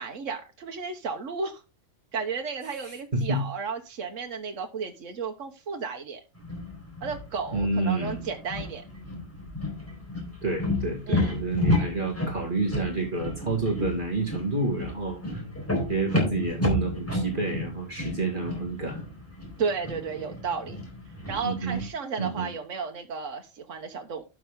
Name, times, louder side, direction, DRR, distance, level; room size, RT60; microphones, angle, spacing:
voice 1, 0.0-1.6 2.1-6.2 7.0-8.8 11.1-11.4 19.6-20.8 21.3-24.2, right 5 dB, 80° right, 4 dB, 1.5 m, -33 dB
voice 2, 2.8-3.4 7.5-8.3 10.4-15.4 15.9-19.0 21.4-21.8 22.2-22.5, right 2 dB, 40° right, 0 dB, 2.3 m, -29 dB
sound 1, 6.4-21.9, left 1 dB, 10° left, 4.2 m, -32 dB
12.0 x 6.4 x 3.6 m, 0.28 s
omnidirectional pair, 1.3 m